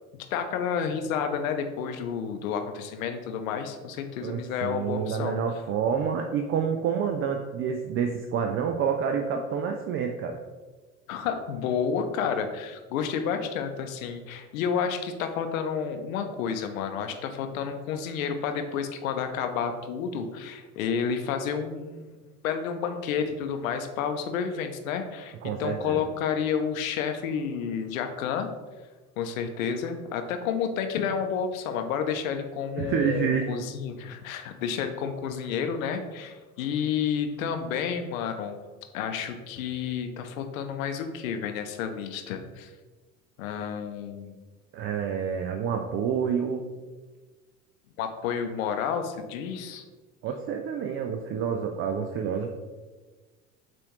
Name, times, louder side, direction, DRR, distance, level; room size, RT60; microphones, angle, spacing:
voice 1, 0.3-5.4 11.1-22.1 22.4-28.5 29.2-38.6 38.9-42.7 43.4-44.4 48.0-49.8, left 7 dB, 70° left, 7 dB, 0.7 m, -30 dB
voice 2, 4.2-10.4 25.4-26.0 32.8-33.5 44.7-46.7 50.2-52.5, right 7 dB, 35° right, 4 dB, 0.4 m, -28 dB
6.9 x 2.6 x 3.0 m, 1.3 s
figure-of-eight pair, 65°, 42 cm